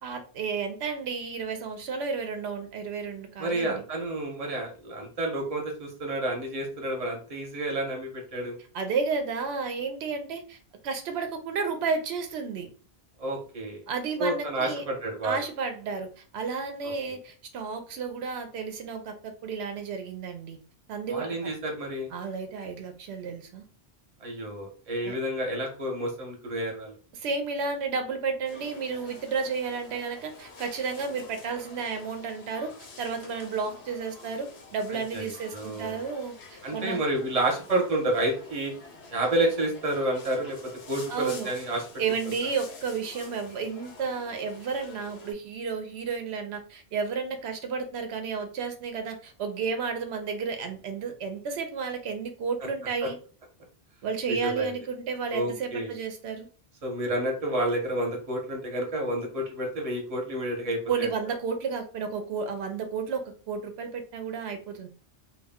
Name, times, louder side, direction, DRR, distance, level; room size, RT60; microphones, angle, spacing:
voice 1, 0.0-3.8 8.7-10.6 10.8-12.7 13.9-14.8 15.2-20.6 20.9-21.5 22.1-23.6 25.0-25.1 27.1-32.7 33.0-37.0 41.1-41.5 42.0-53.2 54.0-56.5 60.9-64.9, right 5 dB, 90° right, 6 dB, 0.8 m, -32 dB
voice 2, 3.4-8.6 13.2-13.8 14.2-15.4 16.8-17.2 21.1-22.1 24.2-26.9 34.9-36.0 36.6-38.7 39.1-40.6 40.9-41.9 53.0-53.1 54.3-54.8 55.3-55.9 56.8-61.1, right 1 dB, 40° right, 1 dB, 0.8 m, -30 dB
sound 1, 28.5-45.3, left 3 dB, 90° left, 1.0 m, -48 dB
2.3 x 2.2 x 3.4 m, 0.38 s
omnidirectional pair, 1.0 m